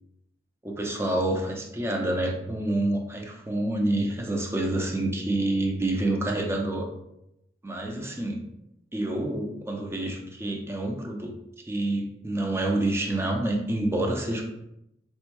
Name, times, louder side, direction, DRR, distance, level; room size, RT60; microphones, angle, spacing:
voice 1, 0.6-6.9 7.6-8.4 8.9-11.3 11.6-14.4, right 1 dB, 15° right, 2 dB, 0.4 m, -28 dB
4.3 x 2.2 x 2.9 m, 0.84 s
head